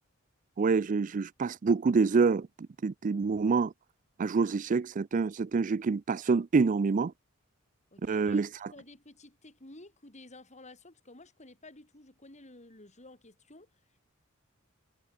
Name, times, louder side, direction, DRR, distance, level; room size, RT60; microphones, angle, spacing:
voice 1, 0.6-2.5 2.8-3.7 4.2-7.1 8.0-8.7, right 4 dB, 40° right, 0.4 m, -27 dB
voice 2, 7.9-8.5 8.7-13.8, left 2 dB, 35° left, 4.2 m, -52 dB
head